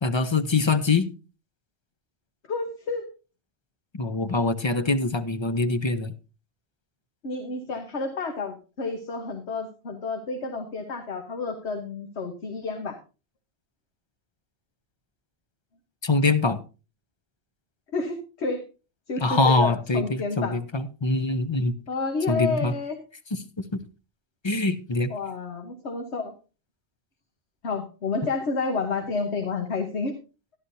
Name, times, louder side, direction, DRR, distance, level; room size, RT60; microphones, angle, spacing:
voice 1, 0.0-1.1 3.9-6.1 16.0-16.6 19.2-21.8 22.3-22.7 23.7-23.8 24.4-25.1, left 3 dB, 30° left, 10 dB, 0.6 m, -24 dB
voice 2, 2.5-3.1 7.2-13.0 17.9-18.6 19.1-20.6 21.9-23.0 25.1-26.3 27.6-30.1, left 4 dB, 80° left, 4 dB, 1.4 m, -30 dB
12.5 x 11.5 x 2.7 m, 0.32 s
omnidirectional pair, 1.1 m